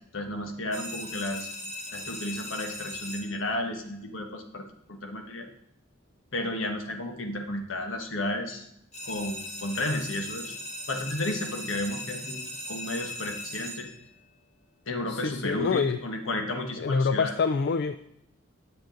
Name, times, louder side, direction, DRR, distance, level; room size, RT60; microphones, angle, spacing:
voice 1, 0.1-1.5 1.9-4.6 4.9-5.5 6.3-8.7 9.0-10.5 10.9-13.9 14.9-17.3, left 1 dB, 75° left, 4 dB, 1.3 m, -33 dB
sound 1, 0.7-3.6 8.9-14.1, left 1 dB, 35° left, 1.4 m, -39 dB
voice 2, 15.1-16.0 16.8-18.0, left 5 dB, 55° left, 10 dB, 0.3 m, -26 dB
10.0 x 7.7 x 3.9 m, 0.76 s
head